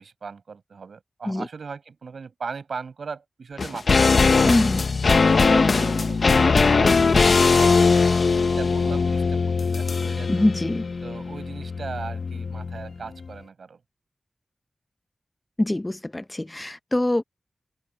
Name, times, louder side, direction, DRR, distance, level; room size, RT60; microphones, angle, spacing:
voice 1, 0.0-4.6 5.1-8.1 8.5-10.5 11.0-13.8, right 5 dB, 80° right, 5.4 m, -38 dB
sound 1, 3.6-13.0 13.2-13.3, left 4 dB, 60° left, 1.0 m, -20 dB
voice 2, 4.4-4.8 10.3-10.8 15.6-17.2, left 1 dB, 20° left, 0.8 m, -24 dB
open air
wide cardioid pair, 80°, 0 cm